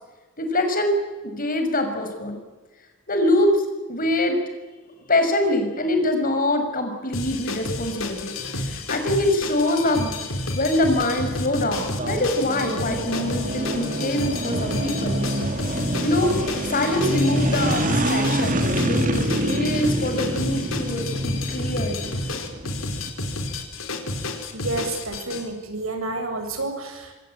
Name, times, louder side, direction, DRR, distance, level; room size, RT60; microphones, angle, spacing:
voice 1, 0.4-1.0 1.2-2.4 3.1-3.6 3.9-4.4 5.1-8.3 8.6-10.1 10.6-15.2 16.0-16.4 16.7-22.1, left 1 dB, 45° left, 6 dB, 5.9 m, -24 dB
sound 1, 7.1-25.4, left 2 dB, 75° left, 4.4 m, -30 dB
sound 2, 11.8-23.1, right 1 dB, 40° right, 2.7 m, -27 dB
voice 2, 24.5-27.1, right 2 dB, 90° right, 5 dB, 7.3 m, -30 dB
26.5 x 24.5 x 9.0 m, 1.2 s
head